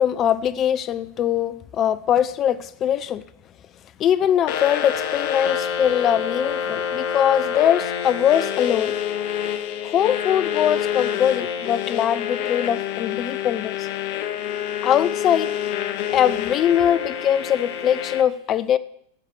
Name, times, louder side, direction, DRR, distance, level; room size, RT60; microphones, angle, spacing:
voice 1, 0.0-3.2 4.0-9.0 9.8-13.9 14.8-15.5 16.1-18.8, left 10 dB, 35° left, 16 dB, 0.6 m, -21 dB
sound 1, 4.5-18.2, left 9 dB, 50° left, 1.0 m, -27 dB
11.5 x 7.4 x 6.3 m, 0.68 s
figure-of-eight pair, 95°, 0 cm